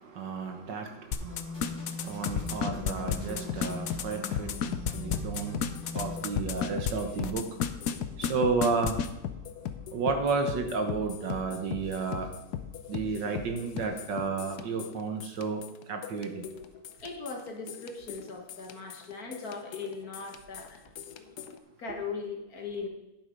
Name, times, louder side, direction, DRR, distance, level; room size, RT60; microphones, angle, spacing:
voice 1, 0.0-4.5 5.0-5.6 5.9-7.5 8.2-9.0 9.9-12.3 12.9-15.6 15.9-16.5, right 4 dB, 60° right, 5 dB, 1.6 m, -32 dB
sound 1, 1.1-6.9 7.2-7.9 8.2-8.3 8.6-9.1, left 8 dB, 85° left, 0.7 m, -30 dB
sound 2, 1.2-6.2, left 1 dB, 20° left, 3.5 m, -40 dB
sound 3, 2.1-21.6, left 9 dB, 65° left, 1.0 m, -40 dB
voice 2, 17.0-20.8 21.2-21.3 21.8-22.9, left 4 dB, 45° left, 2 dB, 1.8 m, -39 dB
10.0 x 7.6 x 5.2 m, 0.91 s
omnidirectional pair, 2.3 m